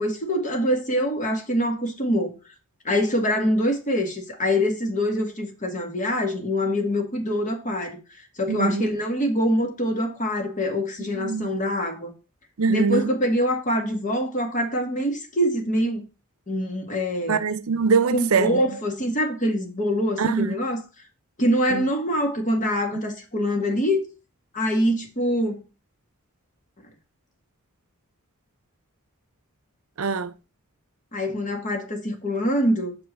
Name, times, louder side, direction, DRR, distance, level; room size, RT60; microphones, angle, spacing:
voice 1, 0.0-2.3 2.9-8.0 8.4-12.1 12.7-16.0 16.5-17.4 18.1-20.8 21.4-24.1 24.5-25.6 31.1-33.0, equal, 35° left, 1.9 m, -24 dB
voice 2, 8.5-8.9 11.1-11.5 12.6-13.1 17.3-18.6 20.2-20.5 21.7-21.9 30.0-30.3, right 5 dB, 70° right, 0.6 m, -23 dB
6.2 x 5.5 x 5.7 m
head